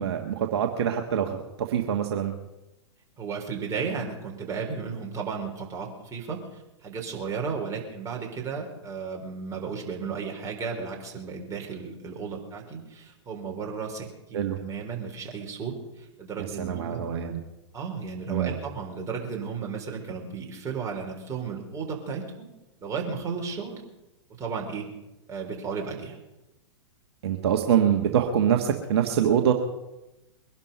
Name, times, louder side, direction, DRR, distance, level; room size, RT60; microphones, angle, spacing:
voice 1, 0.0-1.4 1.7-2.3 14.3-14.6 16.6-17.4 18.3-18.5 27.2-29.5, right 9 dB, 60° right, 4 dB, 1.6 m, -24 dB
voice 2, 3.2-17.0 17.7-22.5 22.8-23.8 24.4-24.9 25.3-26.2, right 5 dB, 20° right, 0 dB, 4.2 m, -34 dB
22.5 x 11.5 x 5.5 m, 0.98 s
hypercardioid pair, 110°, 15 cm